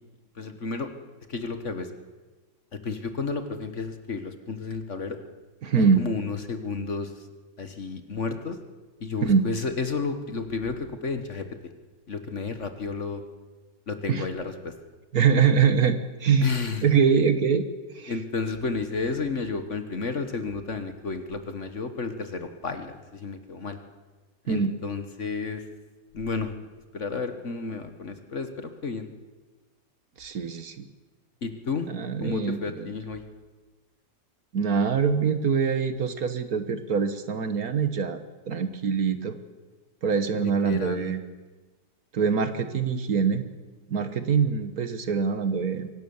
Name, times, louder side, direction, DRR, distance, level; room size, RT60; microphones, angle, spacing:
voice 1, 0.3-0.9 1.3-1.9 2.7-5.2 5.8-7.3 7.6-8.6 9.0-11.5 12.1-13.2 13.9-14.7 16.4-16.9 18.1-23.8 24.5-25.6 26.1-26.5 26.9-29.1 31.4-31.9 32.2-33.2 40.3-41.1, left 4 dB, 45° left, 8 dB, 1.6 m, -32 dB
voice 2, 5.6-6.0 9.2-9.4 14.1-14.2 15.1-16.5 16.8-17.7 17.9-18.1 24.5-24.7 30.2-30.9 31.9-32.9 34.5-38.2 38.5-39.3 40.0-41.2 42.1-43.4 43.9-45.9, right 6 dB, 55° right, 10 dB, 1.6 m, -24 dB
24.5 x 17.0 x 7.1 m, 1.3 s
omnidirectional pair, 1.9 m